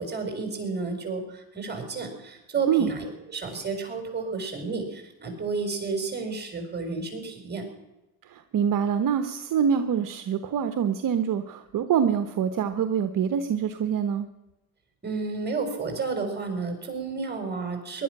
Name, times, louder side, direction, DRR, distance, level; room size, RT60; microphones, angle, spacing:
voice 1, 0.0-7.7 15.0-18.0, right 4 dB, 25° right, 5 dB, 5.4 m, -31 dB
voice 2, 8.3-14.3, right 8 dB, 55° right, 10 dB, 1.1 m, -25 dB
18.5 x 12.0 x 6.1 m, 0.98 s
cardioid pair, 90°, 39 cm